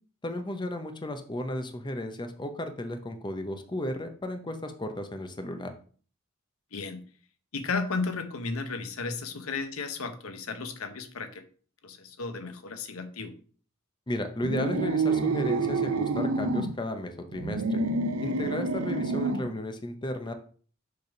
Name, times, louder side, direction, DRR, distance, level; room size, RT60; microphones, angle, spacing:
voice 1, 0.2-5.7 14.1-17.8 18.2-20.3, left 1 dB, 20° left, 7 dB, 0.7 m, -34 dB
voice 2, 6.7-7.0 7.5-11.4 11.8-13.3, left 4 dB, 85° left, 8 dB, 0.9 m, -34 dB
sound 1, 14.4-16.7 17.3-19.5, right 3 dB, 90° right, 0.7 m, -28 dB
6.6 x 3.5 x 5.8 m, 0.43 s
head